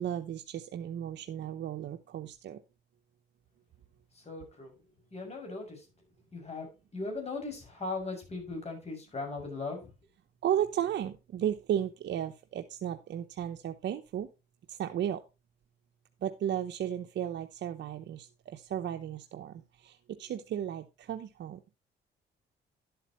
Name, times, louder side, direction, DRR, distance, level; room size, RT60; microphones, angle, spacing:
voice 1, 0.0-2.6 10.4-14.3 14.7-15.2 16.2-21.6, right 10 dB, 65° right, 6 dB, 0.9 m, -34 dB
voice 2, 4.1-5.9 6.3-9.9, left 3 dB, 30° left, 2 dB, 6.5 m, -39 dB
11.0 x 8.1 x 3.0 m, 0.27 s
cardioid pair, 90°, 20 cm